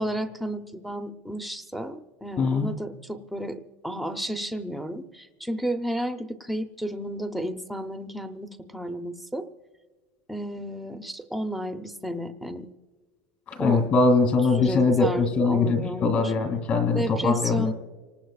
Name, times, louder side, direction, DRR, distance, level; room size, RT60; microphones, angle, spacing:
voice 1, 0.0-9.5 10.3-12.7 13.6-13.8 14.6-16.3 16.9-17.7, right 1 dB, ahead, 6 dB, 0.6 m, -32 dB
voice 2, 2.4-2.7 13.5-17.7, left 4 dB, 35° left, 5 dB, 2.6 m, -22 dB
29.0 x 19.0 x 2.4 m, 1.4 s
cardioid pair, 175°, 4 cm